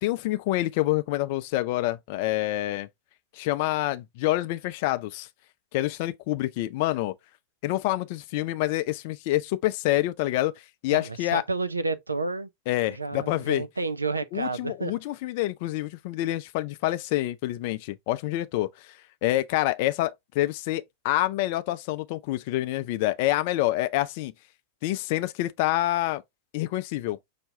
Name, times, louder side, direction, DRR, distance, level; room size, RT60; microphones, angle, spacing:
voice 1, 0.0-2.9 3.3-5.3 5.7-7.1 7.6-10.5 10.8-11.4 12.7-13.6 14.3-18.9 19.2-24.3 24.8-26.2 26.5-27.2, left 16 dB, 50° left, 0.4 m, -27 dB
voice 2, 10.9-12.5 12.9-15.0, right 3 dB, 80° right, 0.4 m, -30 dB
5.7 x 2.2 x 3.6 m
figure-of-eight pair, 90°, 0 cm